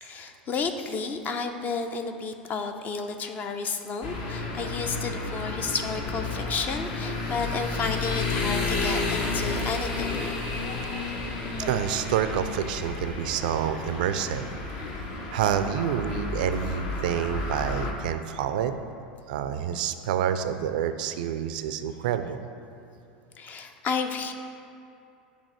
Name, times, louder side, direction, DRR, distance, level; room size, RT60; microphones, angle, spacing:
voice 1, 0.0-10.4 23.4-24.3, left 5 dB, 35° left, 7 dB, 0.6 m, -32 dB
sound 1, 4.0-17.9, left 3 dB, 55° left, 1.0 m, -31 dB
voice 2, 11.7-14.5 15.3-18.7 19.3-22.4, right 9 dB, 65° right, 10 dB, 0.4 m, -28 dB
7.2 x 3.5 x 6.2 m, 2.6 s
figure-of-eight pair, 80°, 5 cm